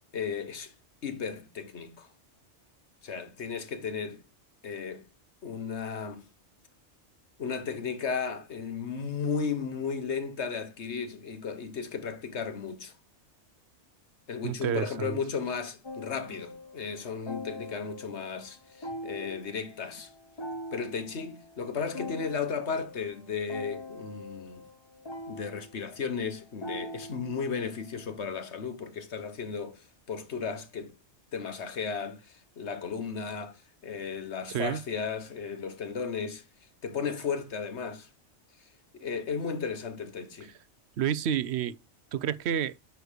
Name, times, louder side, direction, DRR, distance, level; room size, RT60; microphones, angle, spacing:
voice 1, 0.1-0.7 1.0-2.1 3.0-4.2 4.6-5.0 5.4-6.3 7.4-12.9 14.3-20.1 20.7-24.7 25.3-30.9 31.3-36.4 36.8-38.1 38.9-40.5, left 5 dB, 70° left, 1.5 m, -35 dB
voice 2, 14.4-15.2 34.5-34.8 41.0-41.8 42.1-42.7, right 9 dB, 70° right, 0.9 m, -29 dB
sound 1, 15.8-28.2, left 1 dB, 25° left, 1.0 m, -43 dB
9.3 x 3.3 x 6.4 m
omnidirectional pair, 1.2 m